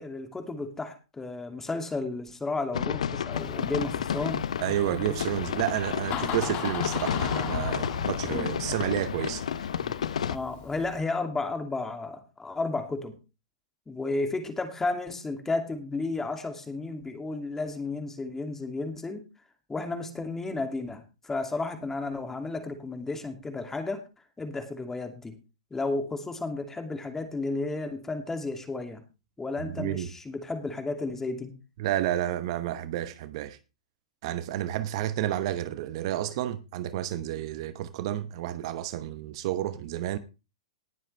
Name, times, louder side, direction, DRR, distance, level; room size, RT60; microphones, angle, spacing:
voice 1, 0.0-4.4 9.8-9.9 10.3-13.1 13.9-19.2 19.7-24.0 24.4-25.4 25.7-29.0 29.4-31.5, left 3 dB, 10° left, 2.5 m, -33 dB
sound 1, 2.7-10.4, left 8 dB, 75° left, 0.8 m, -31 dB
Door, 3.3-11.0, left 8 dB, 40° left, 2.7 m, -39 dB
voice 2, 4.6-9.4 29.6-30.1 31.8-33.6 34.2-40.2, right 12 dB, 50° right, 1.0 m, -30 dB
19.0 x 7.6 x 3.4 m
hypercardioid pair, 115°, 4 cm